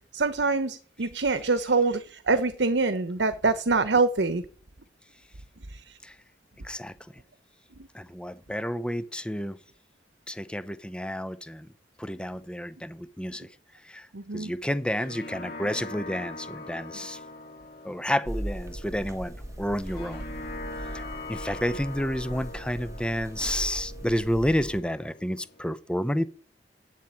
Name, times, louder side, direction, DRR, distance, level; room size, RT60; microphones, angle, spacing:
voice 1, 0.1-4.4 5.7-5.8 14.1-14.5, right 3 dB, 75° right, 1.0 m, -25 dB
voice 2, 6.6-6.9 7.9-9.6 10.3-11.7 12.0-13.5 13.8-14.1 14.3-17.2 17.8-20.2 20.9-26.3, equal, 5° left, 0.8 m, -30 dB
sound 1, 14.7-25.6, left 2 dB, 60° left, 2.3 m, -42 dB
sound 2, 18.3-24.8, right 1 dB, 20° right, 1.7 m, -39 dB
9.1 x 7.4 x 8.7 m
head